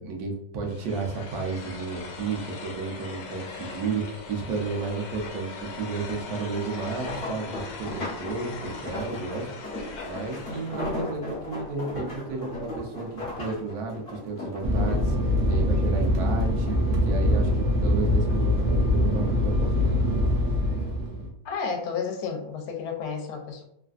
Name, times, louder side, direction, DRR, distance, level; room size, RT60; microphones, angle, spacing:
voice 1, 0.0-9.5 10.1-13.1 13.4-16.8 17.0-17.5 17.8-20.0, right 4 dB, 90° right, 1 dB, 1.2 m, -32 dB
sound 1, 0.7-11.0, left 4 dB, 70° left, 1.1 m, -40 dB
sound 2, 6.7-16.3 16.7-17.6 18.0-19.4 20.1-20.4 20.8-20.9, left 2 dB, 45° left, 1.0 m, -37 dB
Fixed-wing aircraft airplane, 14.6-21.3, left 1 dB, 65° right, 0.9 m, -23 dB
voice 2, 21.4-23.6, left 5 dB, 85° left, 3 dB, 1.1 m, -31 dB
3.2 x 2.4 x 2.3 m, 0.74 s
omnidirectional pair, 1.6 m